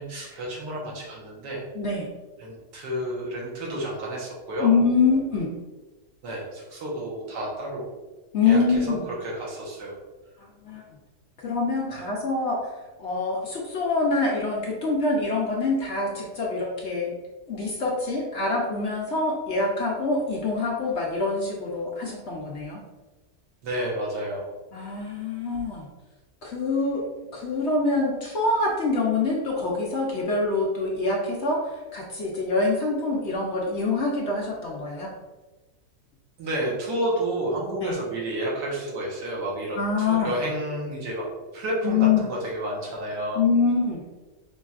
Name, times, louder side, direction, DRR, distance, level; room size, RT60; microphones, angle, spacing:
voice 1, 0.0-1.6 2.4-4.7 6.2-7.8 8.4-9.9 11.9-12.0 23.6-24.5 36.4-41.3 41.5-43.4, right 1 dB, 90° right, -3 dB, 1.7 m, -30 dB
voice 2, 1.7-2.1 4.6-5.5 8.3-9.0 10.6-10.8 11.4-12.6 13.0-17.1 17.5-22.8 24.7-25.9 26.4-27.0 27.3-31.6 31.9-35.1 37.8-37.9 39.8-40.3 41.8-42.2 43.3-44.0, left 3 dB, 55° left, -3 dB, 0.8 m, -25 dB
5.5 x 3.3 x 2.4 m, 1.2 s
omnidirectional pair, 1.8 m